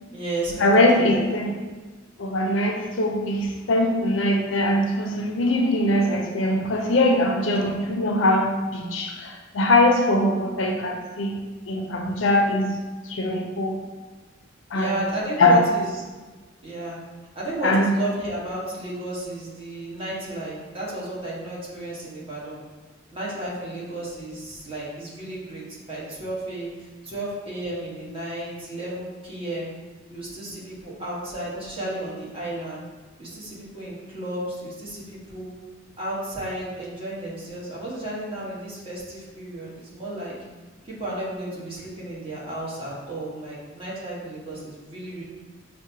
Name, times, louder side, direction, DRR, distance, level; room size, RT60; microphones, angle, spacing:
voice 1, 0.1-1.3 7.5-7.8 14.7-16.0 16.6-17.0 17.3-22.6 23.1-29.7 30.1-32.8 33.2-35.5 36.0-40.3 40.8-45.2, right 1 dB, 30° right, -7 dB, 1.2 m, -33 dB
voice 2, 0.6-1.5 2.2-11.4 11.7-12.8 13.1-13.8 14.7-14.9 15.4-15.6 17.6-17.8, left 1 dB, 75° left, 2 dB, 0.5 m, -21 dB
6.1 x 2.2 x 2.7 m, 1.3 s
head